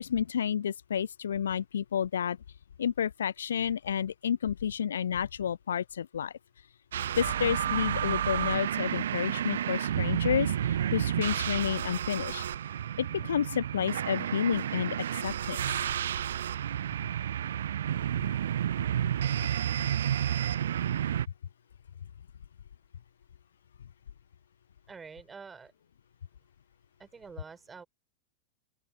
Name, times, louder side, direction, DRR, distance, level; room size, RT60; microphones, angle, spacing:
voice 1, 0.0-2.4 2.8-6.3 7.2-12.4 13.0-15.6, left 8 dB, 65° left, 0.9 m, -30 dB
sound 1, 6.9-21.3, right 10 dB, 65° right, 0.8 m, -31 dB
voice 2, 24.9-25.7 27.0-27.9, right 5 dB, 15° right, 5.7 m, -47 dB
open air
figure-of-eight pair, 90°, 0 cm